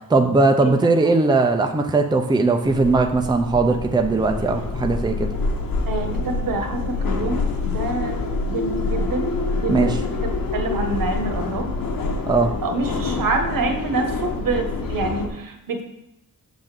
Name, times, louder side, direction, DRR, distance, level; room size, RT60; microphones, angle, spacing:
voice 1, 0.1-5.3 9.7-10.0 12.3-12.5, right 3 dB, 15° right, 4 dB, 0.6 m, -19 dB
sound 1, 2.6-15.3, left 3 dB, 80° left, 1.2 m, -26 dB
voice 2, 5.9-8.2 8.5-11.7 12.6-15.8, right 3 dB, 75° right, 5 dB, 1.4 m, -27 dB
7.3 x 4.1 x 6.6 m, 0.88 s
wide cardioid pair, 120°, 34 cm